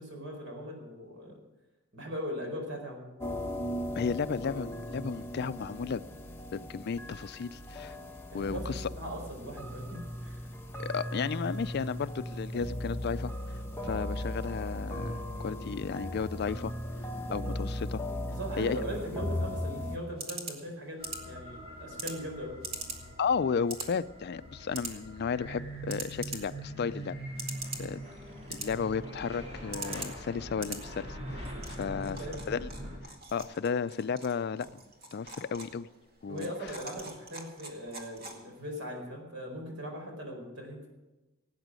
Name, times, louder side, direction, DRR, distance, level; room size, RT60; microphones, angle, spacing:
voice 1, 0.0-1.4 1.9-3.1 8.3-10.5 18.3-22.6 31.8-32.4 36.3-40.9, equal, 75° right, 2 dB, 4.6 m, -40 dB
sound 1, 3.2-20.0, left 1 dB, 10° left, 1.3 m, -37 dB
voice 2, 4.0-6.0 6.5-8.0 8.3-8.9 10.8-13.3 13.8-16.7 17.3-18.0 18.6-18.8 23.2-27.2 27.8-28.0 28.5-32.2 32.5-32.7 33.3-34.7 35.1-35.9 36.2-36.5, left 6 dB, 55° left, 16 dB, 0.4 m, -33 dB
sound 2, 19.4-38.7, right 3 dB, 50° right, 2.1 m, -45 dB
sound 3, 21.0-33.0, right 1 dB, 35° right, 3.4 m, -43 dB
17.5 x 9.0 x 6.2 m, 1.1 s
head